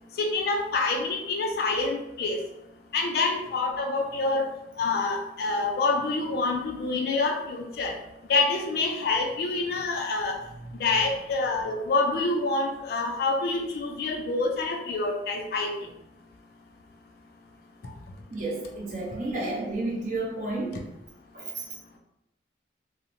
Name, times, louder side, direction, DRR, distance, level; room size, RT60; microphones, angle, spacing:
voice 1, 0.2-2.4 2.9-4.5 4.8-8.0 8.3-10.4 10.8-15.9, left 3 dB, 55° left, 2 dB, 0.3 m, -27 dB
voice 2, 18.3-20.8 21.3-21.6, right 2 dB, 45° right, -3 dB, 0.6 m, -31 dB
2.7 x 2.0 x 2.5 m, 0.87 s
head